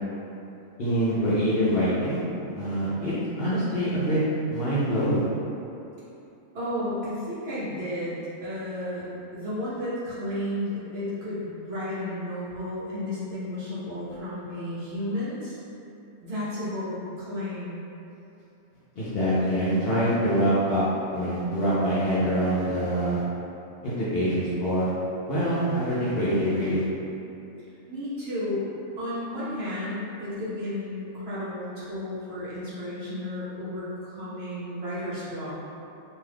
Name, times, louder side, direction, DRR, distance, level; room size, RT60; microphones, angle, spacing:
voice 1, 0.8-2.2 2.6-4.2 4.5-5.2 19.0-20.8 21.1-23.2 23.8-24.9 25.3-26.8, equal, 55° left, -10 dB, 0.7 m, -25 dB
voice 2, 6.5-9.0 9.3-15.6 16.2-17.8 27.9-28.6 29.0-35.5, left 1 dB, 55° right, -10 dB, 0.8 m, -33 dB
2.6 x 2.3 x 3.3 m, 2.8 s
omnidirectional pair, 1.4 m